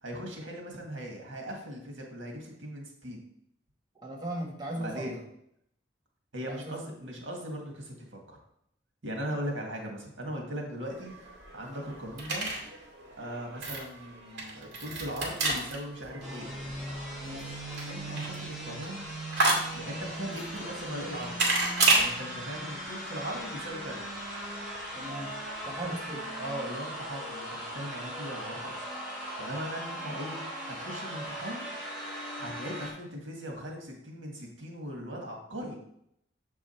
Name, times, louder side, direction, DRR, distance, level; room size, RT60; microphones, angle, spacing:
voice 1, 0.0-3.2 4.8-5.2 6.3-8.4 9.0-12.5 13.2-16.5 17.9-19.1 19.7-21.5 21.9-24.0 25.8-25.9 26.4-28.8 29.4-30.4 30.7-31.7 32.4-35.8, equal, 85° right, 1 dB, 1.7 m, -39 dB
voice 2, 3.9-5.1 6.5-6.8 17.2-17.6 22.5-22.6 24.9-25.3 25.6-26.2, right 1 dB, 20° right, -3 dB, 1.3 m, -38 dB
sound 1, 10.8-22.1, right 2 dB, 60° right, 2.3 m, -31 dB
sound 2, 16.2-32.9, right 1 dB, 5° right, 2.7 m, -39 dB
7.3 x 4.8 x 4.4 m, 0.74 s
head